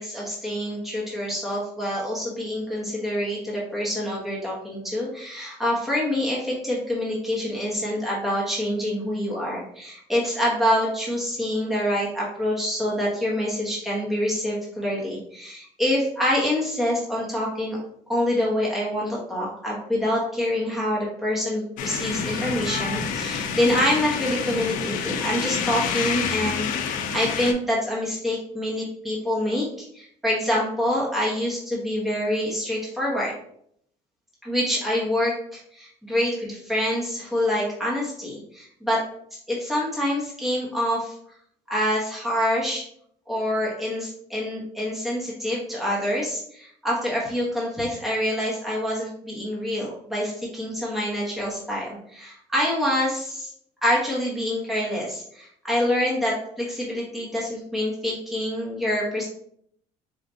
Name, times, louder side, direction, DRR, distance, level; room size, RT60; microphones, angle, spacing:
voice 1, 0.0-17.8 18.1-29.7 29.9-33.4 34.4-39.0 39.5-41.1 41.7-42.8 43.3-53.5 53.8-59.3, left 1 dB, ahead, -5 dB, 1.0 m, -26 dB
sound 1, 21.8-27.5, left 6 dB, 70° left, 0.5 m, -28 dB
4.3 x 2.4 x 2.6 m, 0.68 s
cardioid pair, 140°, 14 cm